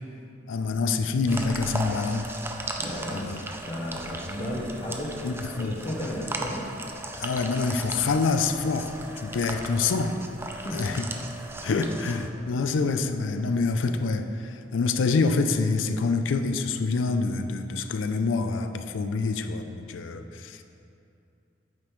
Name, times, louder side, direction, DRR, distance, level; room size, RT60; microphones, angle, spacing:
voice 1, 0.5-2.3 3.1-3.4 5.2-5.8 7.2-8.9 9.2-10.2 10.7-11.0 11.6-20.6, left 4 dB, 85° left, 8 dB, 0.4 m, -26 dB
sound 1, 1.3-12.3, right 2 dB, 15° right, 0.3 m, -37 dB
voice 2, 2.8-5.3 5.6-6.7 10.4-10.9 11.7-11.9, left 1 dB, 30° left, -5 dB, 0.7 m, -34 dB
8.8 x 5.0 x 3.1 m, 2.7 s
head